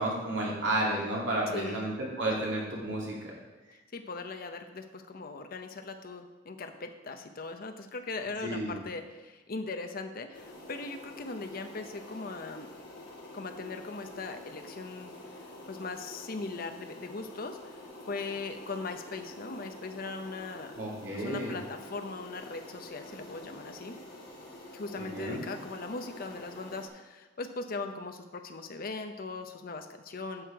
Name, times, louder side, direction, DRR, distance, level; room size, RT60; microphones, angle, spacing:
voice 1, 0.0-3.3 8.4-8.8 20.7-21.6 25.0-25.4, right 1 dB, 70° right, -4 dB, 2.8 m, -32 dB
voice 2, 1.5-1.9 3.7-12.7 13.3-15.1 15.7-20.8 21.1-24.0 24.7-30.4, left 3 dB, 50° left, 6 dB, 0.8 m, -39 dB
sound 1, 10.3-26.9, left 1 dB, 85° left, 2.8 m, -47 dB
9.9 x 6.5 x 4.6 m, 1.2 s
head